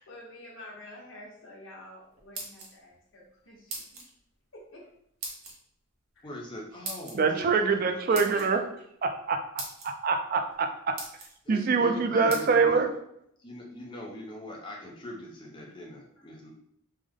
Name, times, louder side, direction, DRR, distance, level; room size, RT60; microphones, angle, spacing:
voice 1, 0.0-3.8 4.5-4.8 6.1-6.3 8.3-8.4, left 1 dB, 65° left, -4 dB, 1.1 m, -48 dB
sound 1, 2.1-3.0 3.7-4.1 5.2-5.5 6.8-7.2 8.1-8.5 9.2-9.3 9.6-9.9 10.5-10.6 11.0-11.3 12.3-12.4, right 3 dB, 85° right, 0.9 m, -38 dB
voice 2, 6.2-8.4 11.4-12.8 13.4-16.5, left 1 dB, 20° left, -2 dB, 0.6 m, -42 dB
voice 3, 7.1-8.7 9.0-12.9, right 4 dB, 45° right, 5 dB, 0.3 m, -25 dB
3.4 x 2.1 x 3.5 m, 0.71 s
head